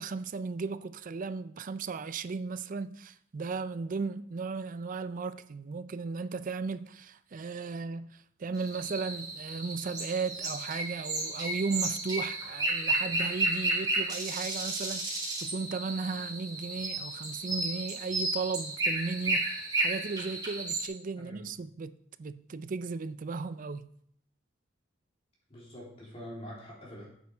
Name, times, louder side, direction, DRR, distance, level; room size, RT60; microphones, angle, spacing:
voice 1, 0.0-23.9, right 4 dB, 45° right, 0.4 m, -36 dB
sound 1, 8.6-20.9, right 2 dB, 20° right, 4.3 m, -33 dB
voice 2, 25.5-27.1, equal, 30° left, 3.4 m, -45 dB
9.7 x 8.2 x 3.5 m
head